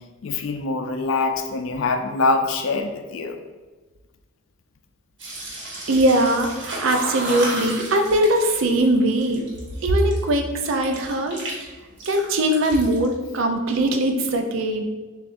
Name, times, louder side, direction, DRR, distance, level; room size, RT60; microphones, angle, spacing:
voice 1, 0.2-3.4, left 3 dB, 80° left, 7 dB, 0.4 m, -24 dB
sound 1, 5.2-10.3 10.7-11.6 11.9-13.1, right 1 dB, 65° right, 1.2 m, -33 dB
voice 2, 5.9-9.4 9.8-11.4 12.1-14.8, right 1 dB, 85° right, 4 dB, 0.5 m, -21 dB
6.6 x 2.5 x 2.5 m, 1.3 s
head